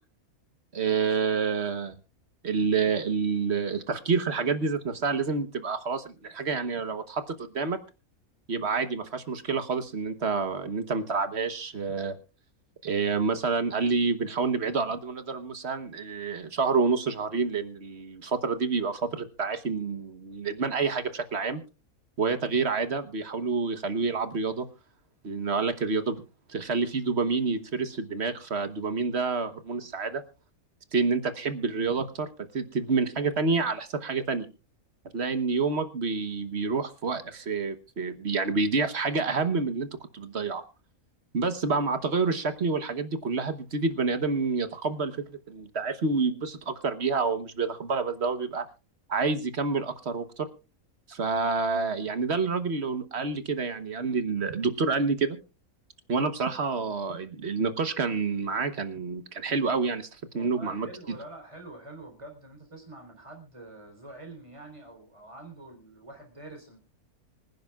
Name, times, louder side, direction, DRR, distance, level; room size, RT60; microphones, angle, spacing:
voice 1, 0.7-1.9 2.4-7.8 8.5-12.2 12.8-21.6 22.2-24.7 25.2-26.2 26.5-30.2 30.9-32.3 32.5-34.5 35.1-39.9 40.1-40.6 41.3-45.2 45.5-48.6 49.1-50.5 51.1-55.4 56.1-60.1 60.3-60.9, right 4 dB, 50° right, 10 dB, 1.3 m, -28 dB
voice 2, 60.3-66.8, right 2 dB, 20° right, 3 dB, 3.9 m, -46 dB
25.5 x 10.5 x 2.4 m, 0.31 s
omnidirectional pair, 1.6 m